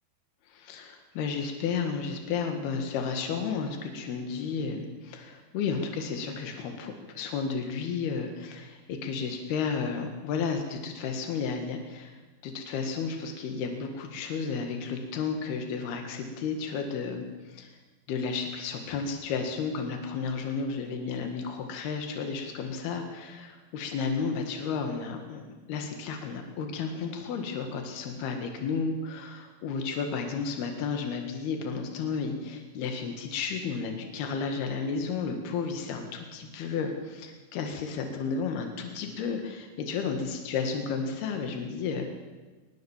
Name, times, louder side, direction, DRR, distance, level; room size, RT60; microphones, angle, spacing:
voice 1, 0.5-17.7 18.1-42.1, left 5 dB, 80° left, 5 dB, 3.8 m, -32 dB
22.5 x 20.0 x 7.3 m, 1.3 s
omnidirectional pair, 4.5 m